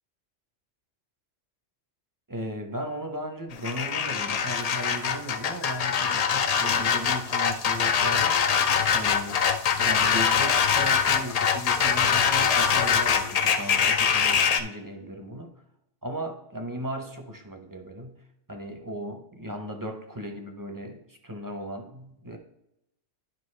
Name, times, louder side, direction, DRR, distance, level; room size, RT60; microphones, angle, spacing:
voice 1, 2.3-8.6 8.9-9.4 9.7-15.5 16.0-18.2 18.5-22.4, equal, 25° right, 4 dB, 0.5 m, -36 dB
sound 1, 3.5-14.6, left 7 dB, 80° left, 0.3 m, -23 dB
10.0 x 5.1 x 3.2 m, 0.84 s
omnidirectional pair, 1.2 m